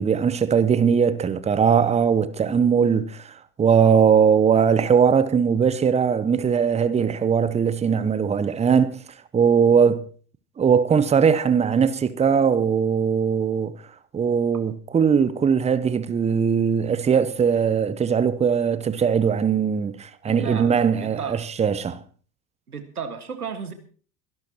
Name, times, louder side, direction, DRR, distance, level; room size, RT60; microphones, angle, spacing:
voice 1, 0.0-9.0 9.3-10.0 10.6-13.7 14.1-22.0, right 7 dB, 15° right, 0.8 m, -20 dB
voice 2, 20.3-21.4 22.7-23.7, right 6 dB, 85° right, 1.8 m, -33 dB
23.0 x 12.0 x 3.0 m
figure-of-eight pair, 70°, 44 cm